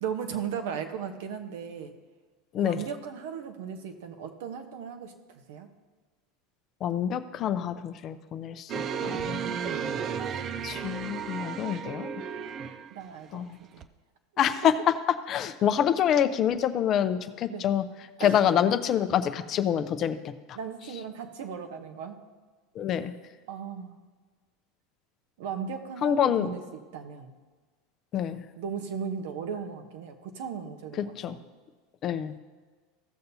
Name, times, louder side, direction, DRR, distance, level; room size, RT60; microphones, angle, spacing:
voice 1, 0.0-1.9 2.6-5.1 5.5-5.7 10.0-10.2 12.9-13.5 13.7-13.8 17.5-17.7 18.2-18.5 20.5-22.2 23.5-24.0 25.4-26.6 26.9-27.3 28.5-31.4, right 7 dB, 70° right, 6 dB, 1.0 m, -36 dB
voice 2, 6.8-8.7 9.0-9.4 10.6-12.1 13.3-13.6 14.4-14.9 15.3-17.8 18.2-20.6 22.8-23.1 26.0-26.5 28.1-28.4 31.0-31.4 32.0-32.3, left 9 dB, 45° left, 10 dB, 0.6 m, -26 dB
sound 1, 8.7-13.0 13.8-13.9, right 7 dB, 40° right, 0.5 m, -33 dB
16.0 x 6.6 x 2.7 m, 1.4 s
hypercardioid pair, 85°, 0 cm